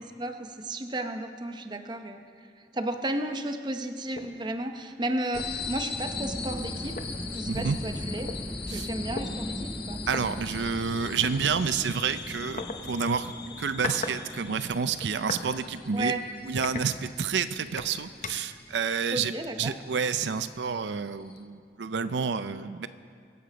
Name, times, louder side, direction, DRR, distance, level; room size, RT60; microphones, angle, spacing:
voice 1, 0.0-2.2 2.6-7.0 7.3-8.3 8.7-10.0 15.9-16.2 19.1-19.7, right 1 dB, 25° right, 6 dB, 0.8 m, -33 dB
sound 1, 4.1-4.4 4.8-4.9 5.4-5.6 6.6-6.7 7.0-8.4 9.2-9.3 10.1-10.2 11.2-11.4 12.6-12.8 13.5-14.2 14.5-15.5 15.9-16.1 16.6-17.4 17.8-18.6, left 3 dB, 45° left, 0.8 m, -37 dB
sound 2, 5.3-21.4, left 5 dB, 65° left, 1.1 m, -41 dB
sound 3, 6.0-18.9, equal, ahead, 0.4 m, -40 dB
voice 2, 7.4-7.8 8.7-8.9 10.1-13.3 13.6-16.1 16.5-19.3 19.6-22.9, right 6 dB, 80° right, 11 dB, 0.5 m, -29 dB
23.5 x 8.0 x 5.0 m, 2.3 s
head